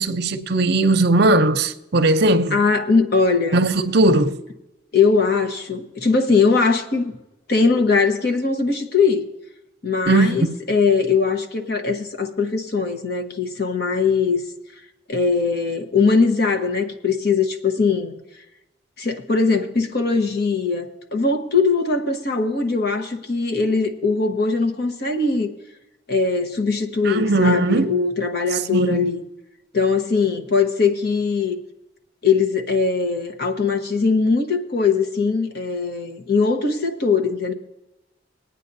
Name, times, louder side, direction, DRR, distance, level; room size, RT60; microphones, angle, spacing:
voice 1, 0.0-2.6 3.5-4.4 10.1-10.5 27.0-27.9 28.7-29.1, right 2 dB, 60° right, 0.7 m, -18 dB
voice 2, 2.5-3.6 4.9-7.0 7.5-9.3 9.8-14.4 15.1-18.1 19.0-25.5 26.1-29.2 29.7-31.6 32.2-37.5, left 4 dB, 60° left, 1.2 m, -20 dB
21.5 x 9.2 x 2.7 m
head